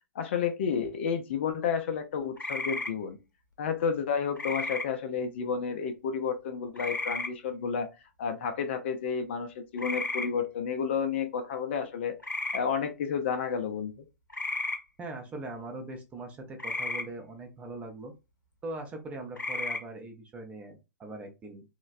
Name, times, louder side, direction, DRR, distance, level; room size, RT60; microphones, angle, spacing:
voice 1, 0.2-3.2 3.6-7.9 8.2-12.2 12.5-14.0, left 6 dB, 40° left, 7 dB, 0.4 m, -31 dB
sound 1, 2.4-2.9 4.4-4.9 6.8-7.3 9.8-10.3 12.2-12.6 14.3-14.8 16.6-17.0 19.4-19.8, left 2 dB, 80° left, 0.7 m, -33 dB
voice 2, 15.0-18.1 18.6-21.6, right 2 dB, 10° right, 2 dB, 0.5 m, -41 dB
3.0 x 2.1 x 2.4 m, 0.27 s
figure-of-eight pair, 115°, 10 cm